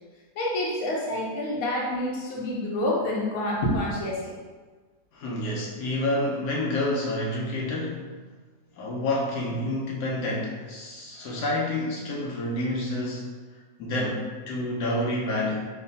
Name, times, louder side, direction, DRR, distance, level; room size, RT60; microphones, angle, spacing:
voice 1, 0.4-4.3, left 1 dB, 65° left, -3 dB, 1.2 m, -28 dB
voice 2, 5.1-8.1 8.8-13.3 13.8-15.6, left 1 dB, 85° left, -3 dB, 1.2 m, -28 dB
4.2 x 3.1 x 2.7 m, 1.4 s
omnidirectional pair, 1.7 m